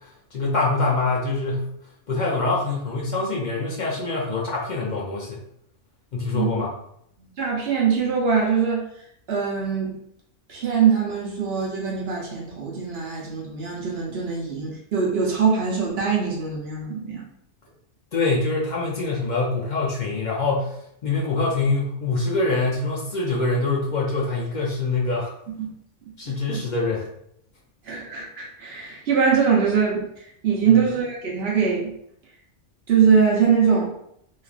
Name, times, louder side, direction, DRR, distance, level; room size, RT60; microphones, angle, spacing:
voice 1, 0.3-1.6 2.1-5.4 6.1-6.7 18.1-20.7 21.0-25.3 26.2-27.1 30.7-30.8, left 3 dB, 60° left, -4 dB, 0.5 m, -24 dB
voice 2, 7.4-8.8 9.3-9.9 10.5-17.3 25.6-25.7 26.3-26.6 27.9-30.0 30.4-31.9 32.9-33.9, right 6 dB, 60° right, -2 dB, 0.8 m, -22 dB
2.9 x 2.4 x 2.4 m, 0.73 s
omnidirectional pair, 1.4 m